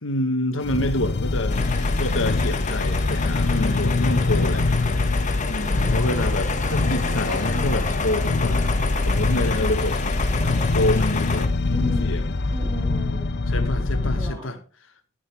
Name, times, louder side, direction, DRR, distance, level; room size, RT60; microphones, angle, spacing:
voice 1, 0.0-1.6 2.0-4.7 5.5-8.8 9.0-12.3 13.5-14.6, left 1 dB, 80° left, 1.7 m, -28 dB
sound 1, 0.6-14.3, left 2 dB, 60° left, 0.7 m, -23 dB
voice 2, 1.3-1.8 5.6-6.1 7.3-7.4 8.1-8.5 9.3-11.0 11.7-12.1 12.5-13.3 14.0-14.6, right 1 dB, 20° right, 3.2 m, -40 dB
sound 2, 1.5-11.5, left 4 dB, 40° left, 1.5 m, -30 dB
13.5 x 9.5 x 3.6 m
head